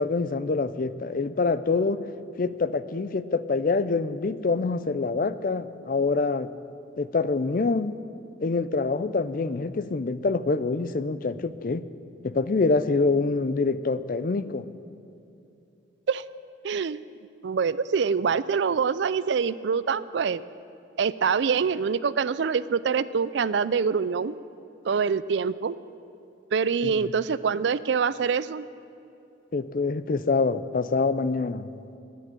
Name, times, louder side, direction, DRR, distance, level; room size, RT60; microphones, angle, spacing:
voice 1, 0.0-2.0 2.4-6.5 7.0-8.0 8.4-11.9 12.2-14.7 26.8-27.0 29.5-31.7, left 3 dB, 45° left, 14 dB, 0.4 m, -25 dB
voice 2, 16.6-17.0 17.4-20.4 21.0-24.4 24.8-25.7 26.5-28.7, right 6 dB, 70° right, 17 dB, 0.4 m, -25 dB
10.5 x 10.5 x 8.9 m, 2.7 s
head